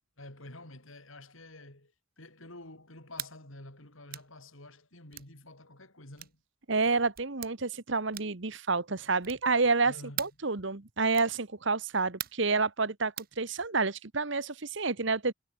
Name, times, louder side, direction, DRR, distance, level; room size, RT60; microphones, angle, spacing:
voice 1, 0.2-6.4 9.8-10.3, left 1 dB, 75° left, 6.6 m, -49 dB
sound 1, 3.1-3.4 4.1-4.3 5.1-5.3 6.2-6.4 7.1-7.5 8.1-8.5 9.2-9.5 10.2-10.4 11.1-11.4 12.2-12.5 13.2-13.3, right 14 dB, 45° right, 0.7 m, -40 dB
voice 2, 6.7-9.9 10.2-15.3, right 4 dB, 60° right, 1.3 m, -29 dB
head